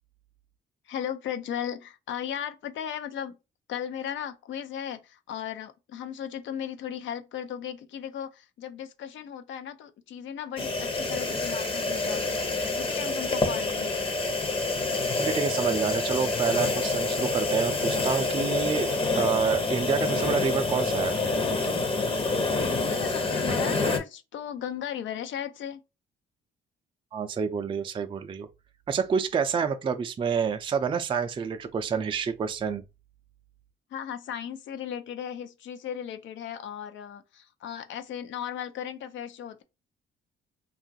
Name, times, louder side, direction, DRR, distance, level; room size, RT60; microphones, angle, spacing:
voice 1, 0.9-3.4 3.7-14.0 22.7-25.8 33.9-39.6, left 9 dB, 70° left, 0.6 m, -36 dB
sound 1, 10.6-24.0, left 3 dB, 25° left, 0.8 m, -27 dB
voice 2, 15.2-18.9 19.2-21.1 27.1-28.5 28.9-32.8, right 6 dB, 25° right, 0.3 m, -28 dB
2.9 x 2.4 x 2.6 m
cardioid pair, 90°, 20 cm